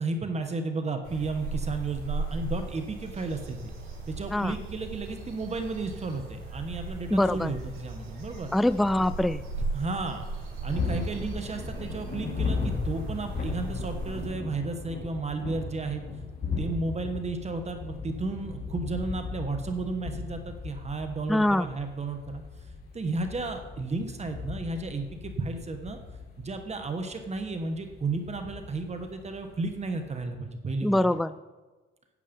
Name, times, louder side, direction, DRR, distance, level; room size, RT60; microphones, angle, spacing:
voice 1, 0.0-3.7 4.1-8.5 9.7-10.2 10.6-16.0 16.6-22.4 22.9-26.0 26.4-31.0, right 3 dB, 35° right, 6 dB, 1.2 m, -33 dB
sound 1, 1.0-14.3, right 2 dB, 85° right, 3.5 m, -38 dB
voice 2, 7.1-7.5 8.5-9.4 21.3-21.7 30.8-31.3, left 1 dB, ahead, 14 dB, 0.3 m, -24 dB
sound 2, 10.7-30.2, left 4 dB, 50° left, 3.0 m, -37 dB
11.0 x 8.5 x 5.3 m, 1.2 s
cardioid pair, 90°, 20 cm